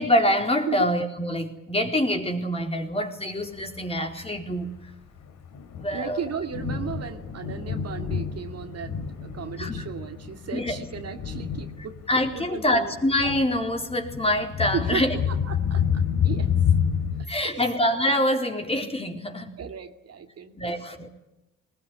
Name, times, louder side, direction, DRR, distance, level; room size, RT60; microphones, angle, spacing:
voice 1, 0.0-4.7 5.8-6.2 9.6-9.8 10.5-10.8 12.1-15.1 17.3-19.6 20.6-21.1, left 1 dB, 20° left, 3 dB, 4.3 m, -25 dB
Thunder, 3.6-17.2, left 7 dB, 80° left, 3.8 m, -29 dB
voice 2, 5.9-12.0 12.3-13.0 14.7-16.5 17.4-17.7 19.6-20.7, right 7 dB, 55° right, 6 dB, 2.4 m, -35 dB
20.5 x 20.0 x 9.9 m, 0.95 s
cardioid pair, 90°, 30 cm